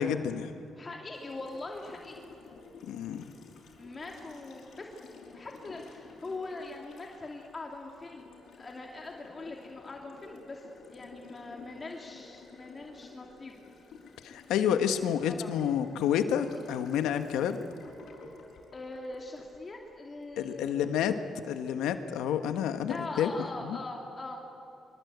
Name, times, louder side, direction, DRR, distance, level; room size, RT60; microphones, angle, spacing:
voice 1, 0.0-0.7 2.9-3.3 14.2-17.6 20.4-21.2 21.4-23.3 23.6-23.8, left 9 dB, 90° left, 9 dB, 1.3 m, -29 dB
voice 2, 0.8-2.3 3.8-4.9 5.3-8.3 8.6-13.6 15.1-15.6 18.7-21.1 22.9-24.4, left 2 dB, 30° left, 0 dB, 2.5 m, -42 dB
Water tap faucet, 1.1-20.3, left 4 dB, 65° left, 5.3 m, -52 dB
25.0 x 24.5 x 8.2 m, 2.6 s
cardioid pair, 90°, 0 cm